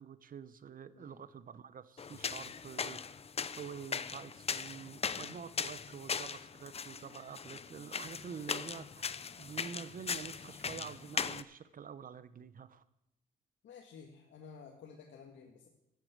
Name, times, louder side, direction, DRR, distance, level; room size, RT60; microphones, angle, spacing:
voice 1, 0.0-3.1 3.6-12.8, right 7 dB, 45° right, 15 dB, 0.9 m, -47 dB
sound 1, 2.0-11.4, left 6 dB, 30° left, 0.6 m, -39 dB
voice 2, 13.6-15.7, left 6 dB, 70° left, 1 dB, 1.8 m, -53 dB
14.0 x 8.5 x 8.1 m, 0.87 s
cardioid pair, 90°, 20 cm